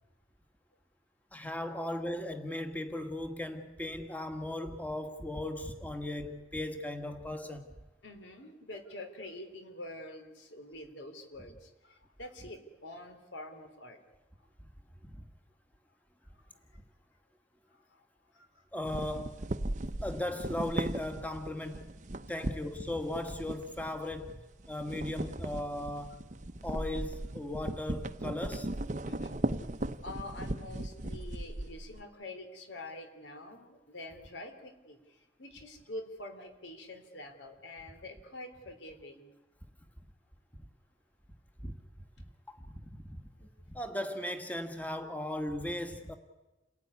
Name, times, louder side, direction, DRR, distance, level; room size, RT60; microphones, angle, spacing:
voice 1, 1.3-7.7 15.0-15.3 18.7-19.5 20.0-21.9 22.3-26.2 26.6-28.7 41.6-41.8 42.5-46.1, left 1 dB, 10° left, 1.6 m, -37 dB
voice 2, 8.0-14.0 14.4-14.5 16.3-16.8 17.7-18.6 22.2-22.5 29.1-29.4 30.0-39.3, left 1 dB, 75° left, 3.5 m, -47 dB
sound 1, 18.8-24.3 24.6-32.0, right 1 dB, 40° right, 0.8 m, -38 dB
28.5 x 17.5 x 9.7 m
head